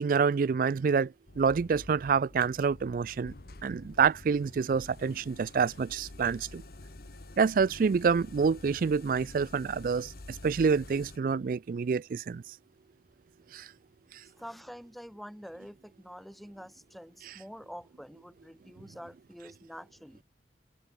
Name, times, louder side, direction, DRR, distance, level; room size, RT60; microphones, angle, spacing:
voice 1, 0.0-3.3 3.6-6.6 7.4-12.4 13.5-13.7 17.2-17.3, right 5 dB, 50° right, 0.3 m, -27 dB
sound 1, 1.3-11.2, left 2 dB, 55° left, 1.2 m, -49 dB
voice 2, 14.4-20.2, equal, ahead, 1.4 m, -47 dB
open air
head